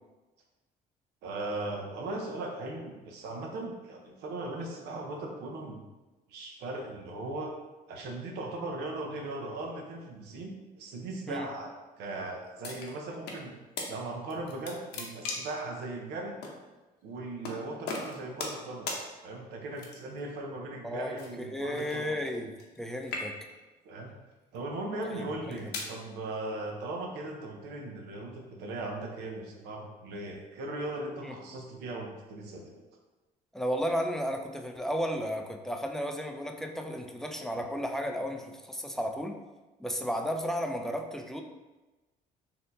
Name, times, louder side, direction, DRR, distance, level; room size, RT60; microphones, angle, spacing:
voice 1, 1.2-5.8 6.3-7.5 7.9-13.5 13.9-16.3 17.0-18.9 19.2-22.1 23.8-24.1 24.5-32.8, right 2 dB, 80° right, 1 dB, 0.7 m, -38 dB
sound 1, 12.6-13.4 13.8-13.9 14.3-15.6 16.4-16.6 17.4-17.6 17.9-18.6 18.9-19.0 19.8-20.2 21.2-22.8 23.0-23.6 24.3-24.6 25.3-25.9, left 3 dB, 80° left, 0.7 m, -38 dB
voice 2, 20.8-23.3 25.0-25.6 31.3-31.4 33.5-39.4 39.8-41.4, equal, 5° left, 3 dB, 0.3 m, -34 dB
4.2 x 2.7 x 2.6 m, 1.1 s
cardioid pair, 110°, 17 cm